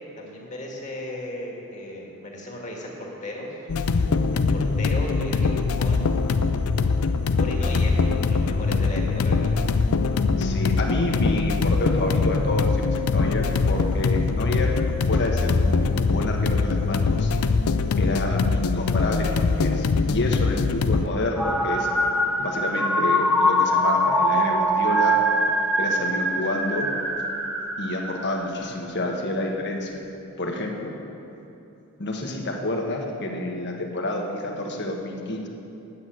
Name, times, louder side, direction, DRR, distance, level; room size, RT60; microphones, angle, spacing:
voice 1, 0.2-3.6 4.3-6.1 7.4-9.5, left 1 dB, 35° left, -2 dB, 2.0 m, -35 dB
sound 1, 3.7-21.1, left 4 dB, 75° left, 0.5 m, -22 dB
voice 2, 10.4-14.8 15.1-17.3 18.0-21.9 22.4-25.2 25.8-26.9 27.8-29.9 30.4-30.9 32.0-35.5, left 1 dB, 50° left, 1 dB, 1.4 m, -29 dB
sound 2, 21.4-28.6, equal, 5° right, 0.7 m, -23 dB
9.8 x 8.2 x 8.0 m, 2.9 s
head